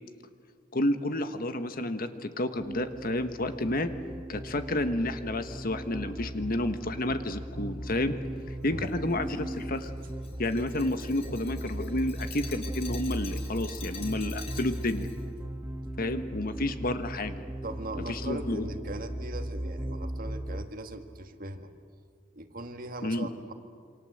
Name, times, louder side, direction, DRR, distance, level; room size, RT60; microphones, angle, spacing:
voice 1, 0.7-3.9 4.3-8.2 8.6-9.9 10.4-15.1 16.0-17.4 18.1-18.7 23.0-23.3, left 1 dB, 50° left, 9 dB, 1.4 m, -30 dB
sound 1, 2.6-20.7, right 1 dB, 10° right, 0.8 m, -37 dB
Glass, 8.8-15.2, left 5 dB, 35° left, 4.3 m, -47 dB
voice 2, 17.6-21.7 22.3-23.5, right 1 dB, 50° right, 7 dB, 1.7 m, -40 dB
27.5 x 26.0 x 8.0 m, 2.1 s
head